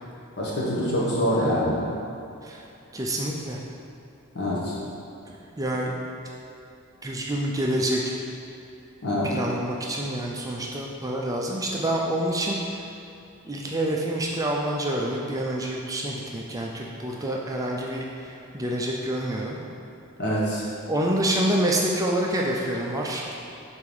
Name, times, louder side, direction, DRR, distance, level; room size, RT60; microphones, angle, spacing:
voice 1, 0.4-1.9 4.3-4.8 9.0-9.3 20.2-20.7, equal, 50° left, -6 dB, 1.4 m, -25 dB
voice 2, 0.9-1.6 2.4-2.6 2.9-3.6 5.3-6.0 7.0-8.2 9.2-12.6 13.4-19.6 20.9-23.3, right 1 dB, 15° right, -2 dB, 0.4 m, -27 dB
4.9 x 4.6 x 5.4 m, 2.8 s
head